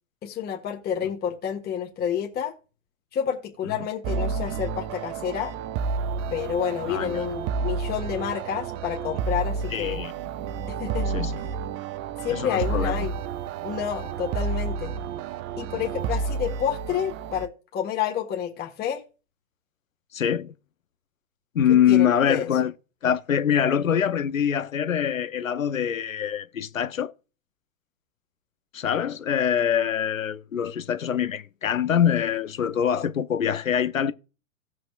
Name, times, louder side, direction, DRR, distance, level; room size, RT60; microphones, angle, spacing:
voice 1, 0.2-2.5 3.1-5.5 6.3-10.0 10.7-11.1 12.2-13.2 13.6-14.9 15.6-19.0 21.7-22.5, left 8 dB, 25° left, 1.6 m, -29 dB
sound 1, 4.0-17.5, right 5 dB, 25° right, 0.4 m, -30 dB
voice 2, 6.9-7.3 9.7-10.1 11.1-11.4 12.3-13.1 20.1-20.5 21.5-22.7 23.0-27.1 28.7-34.1, left 9 dB, 85° left, 0.9 m, -24 dB
17.5 x 6.3 x 2.5 m
hypercardioid pair, 110°, 39 cm